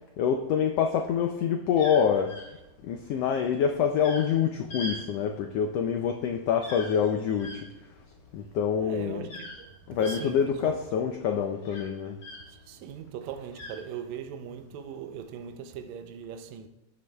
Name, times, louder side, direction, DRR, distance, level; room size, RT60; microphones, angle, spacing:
voice 1, 0.2-2.3 2.8-7.7 8.3-9.3 9.9-12.2, left 7 dB, 80° left, 1.4 m, -26 dB
sound 1, 1.7-12.7 13.0-14.4 15.1-15.5, left 1 dB, 55° left, 3.7 m, -43 dB
voice 2, 8.8-10.8 12.5-16.7, right 8 dB, 75° right, 1.9 m, -40 dB
14.5 x 9.4 x 2.3 m
omnidirectional pair, 3.4 m